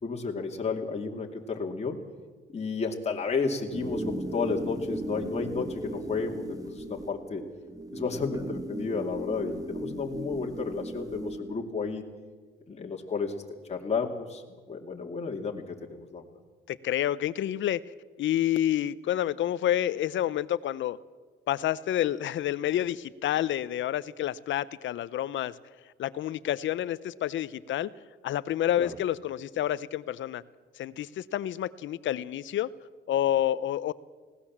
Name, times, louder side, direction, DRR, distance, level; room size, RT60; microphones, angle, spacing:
voice 1, 0.0-2.0 2.5-7.4 7.9-12.0 12.7-14.4 14.7-16.2 28.8-28.9, left 4 dB, 35° left, 1 dB, 2.5 m, -32 dB
sound 1, 3.7-11.6, right 1 dB, 15° right, 2.1 m, -36 dB
voice 2, 16.7-17.8 18.2-21.0 21.5-25.5 26.0-27.9 28.2-30.4 30.8-32.7 33.1-33.9, left 12 dB, 70° left, 18 dB, 0.8 m, -29 dB
20.0 x 17.5 x 7.4 m, 1.4 s
cardioid pair, 90°, 20 cm